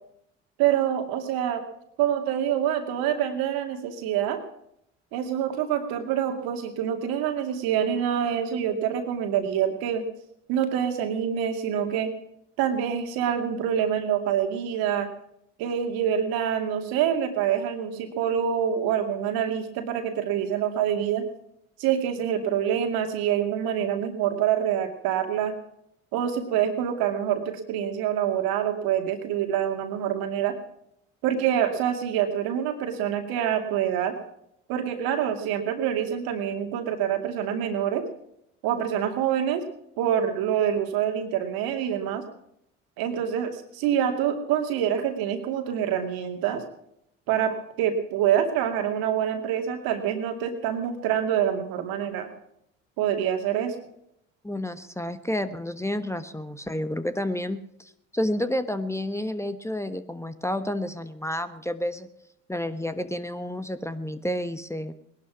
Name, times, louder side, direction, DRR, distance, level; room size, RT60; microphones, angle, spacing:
voice 1, 0.6-1.6 2.0-4.4 5.1-10.0 10.5-12.1 12.6-15.1 15.6-21.2 21.8-25.5 26.1-30.5 31.2-34.1 34.7-38.0 38.6-39.6 40.0-42.2 43.0-46.6 47.3-52.3 53.0-53.7, right 9 dB, 75° right, 5 dB, 2.4 m, -26 dB
voice 2, 54.4-62.1 62.5-64.9, left 1 dB, 5° left, 11 dB, 1.2 m, -30 dB
19.0 x 11.5 x 6.1 m, 0.75 s
hypercardioid pair, 65°, 36 cm